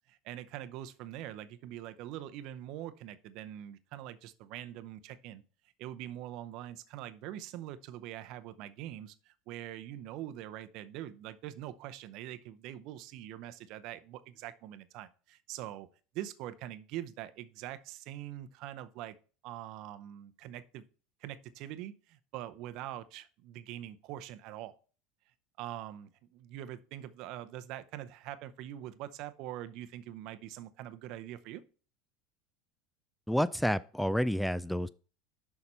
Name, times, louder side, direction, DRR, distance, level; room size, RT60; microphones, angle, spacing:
voice 1, 0.1-5.4 5.8-15.9 16.1-19.2 19.4-20.8 21.2-24.7 25.6-31.6, right 12 dB, 60° right, 0.6 m, -43 dB
voice 2, 33.3-34.9, equal, ahead, 0.3 m, -29 dB
6.6 x 5.7 x 4.3 m
hypercardioid pair, 95°, 0 cm